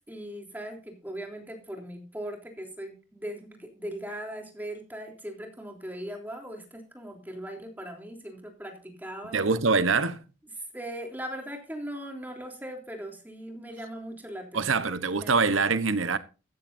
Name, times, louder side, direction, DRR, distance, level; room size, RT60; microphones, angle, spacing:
voice 1, 0.1-9.4 10.7-15.3, equal, 10° right, 3.4 m, -39 dB
voice 2, 9.3-10.2 14.5-16.2, right 4 dB, 85° right, 1.1 m, -24 dB
15.0 x 13.5 x 2.7 m
head